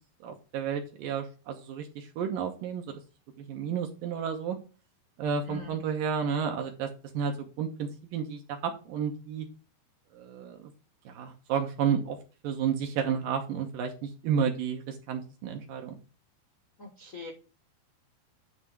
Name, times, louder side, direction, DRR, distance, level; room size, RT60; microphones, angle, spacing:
voice 1, 0.2-3.0 3.4-4.6 5.2-9.5 10.1-10.7 11.1-12.2 12.4-16.0, right 7 dB, 70° right, 4 dB, 2.4 m, -31 dB
voice 2, 16.8-17.3, left 4 dB, 60° left, 0 dB, 0.8 m, -42 dB
9.5 x 3.4 x 6.2 m, 0.34 s
omnidirectional pair, 4.5 m